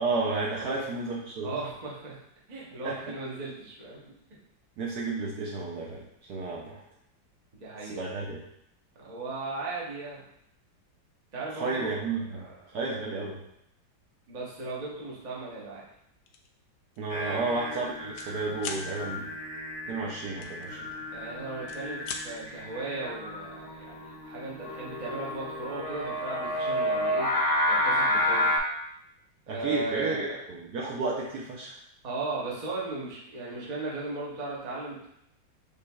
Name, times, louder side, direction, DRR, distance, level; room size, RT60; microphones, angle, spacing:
voice 1, 0.0-1.5 2.8-3.0 4.8-6.0 6.3-6.8 7.8-8.4 11.6-12.5 12.7-13.4 17.0-19.2 19.9-20.8 29.5-31.8, right 3 dB, 70° right, -3 dB, 1.0 m, -32 dB
voice 2, 1.4-2.2 2.5-4.1 7.5-8.1 8.9-10.2 11.3-12.5 14.3-15.8 17.1-17.6 21.1-27.3 27.7-28.5 29.5-30.4 32.0-35.1, right 3 dB, 35° right, -5 dB, 0.7 m, -37 dB
sound 1, 16.3-16.5 16.9-17.1 17.4-18.3 18.6-18.9 20.4-21.2 21.5-22.3, left 5 dB, 75° left, 0.8 m, -39 dB
Singing, 17.1-28.6, left 1 dB, 20° left, 0.5 m, -31 dB
6.7 x 3.2 x 2.3 m, 0.76 s
omnidirectional pair, 2.1 m